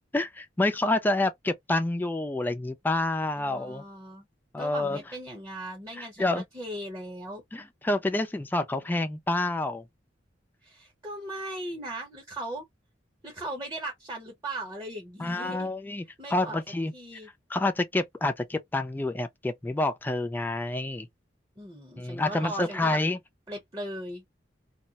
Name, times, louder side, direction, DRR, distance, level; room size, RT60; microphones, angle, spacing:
voice 1, 0.1-3.8 4.5-5.0 5.9-6.4 7.5-9.9 15.2-16.9 17.5-21.1 22.0-23.2, left 2 dB, 10° left, 0.3 m, -28 dB
voice 2, 3.4-4.3 4.6-7.4 10.6-12.6 13.2-15.7 16.2-16.6 16.9-17.3 21.6-23.0 23.5-24.2, right 1 dB, 20° right, 0.8 m, -38 dB
2.3 x 2.1 x 2.7 m
head